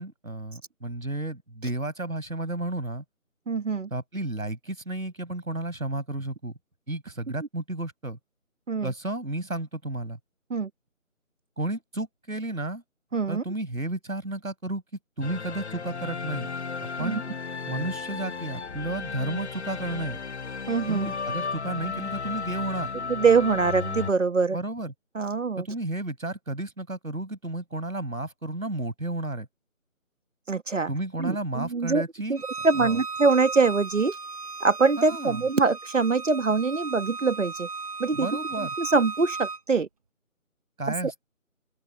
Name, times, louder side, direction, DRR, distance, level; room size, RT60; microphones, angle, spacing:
voice 1, 0.0-3.0 3.9-6.5 6.9-8.2 8.8-10.2 11.6-12.8 13.3-14.8 15.2-16.5 17.0-17.2 17.7-20.2 20.9-22.9 24.5-24.9 25.6-29.5 30.9-32.4 32.8-33.0 35.0-35.4 38.1-38.7 40.8-41.3, right 2 dB, 80° right, 5.6 m, -32 dB
voice 2, 3.5-3.9 8.7-8.9 10.5-10.7 13.1-13.4 17.0-17.2 20.7-21.1 23.1-24.6 25.1-25.7 30.5-30.9 31.2-34.2 34.6-37.7 38.0-38.3 38.8-39.9 41.0-41.1, right 4 dB, 60° right, 1.3 m, -24 dB
sound 1, 15.2-24.1, left 5 dB, 55° left, 0.6 m, -34 dB
Bowed string instrument, 32.4-39.6, right 4 dB, 25° right, 1.3 m, -36 dB
open air
figure-of-eight pair, 160°, 41 cm